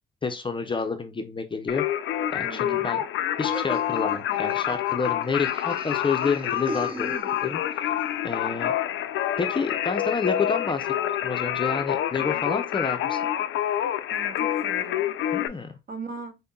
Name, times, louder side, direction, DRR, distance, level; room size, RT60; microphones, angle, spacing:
voice 1, 0.2-1.8 2.3-3.0 3.4-7.1 7.4-7.9 8.2-8.7 9.4-10.9 11.2-13.2 15.3-15.7, left 4 dB, 25° left, 0.5 m, -29 dB
Singing, 1.7-15.5, left 11 dB, 75° left, 0.4 m, -27 dB
voice 2, 2.4-3.0 14.1-15.0 15.9-16.4, right 4 dB, 50° right, 1.1 m, -39 dB
Laughter, 3.5-7.8, right 2 dB, 25° right, 0.7 m, -40 dB
5.2 x 2.2 x 2.3 m
cardioid pair, 90°, 20 cm